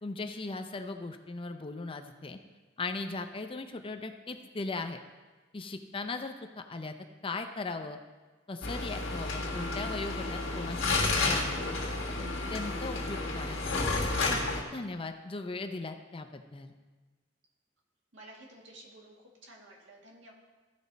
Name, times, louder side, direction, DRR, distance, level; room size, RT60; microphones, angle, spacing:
voice 1, 0.0-2.4 2.8-5.0 5.5-6.9 7.2-8.0 8.5-11.7 12.5-13.6 14.3-14.4 14.7-16.7, left 3 dB, 30° left, 7 dB, 0.5 m, -38 dB
sound 1, 8.6-14.6, left 3 dB, 75° left, 1.5 m, -31 dB
voice 2, 18.1-19.1 19.4-20.3, right 1 dB, 65° right, -1 dB, 1.7 m, -52 dB
14.5 x 5.3 x 4.1 m, 1.3 s
head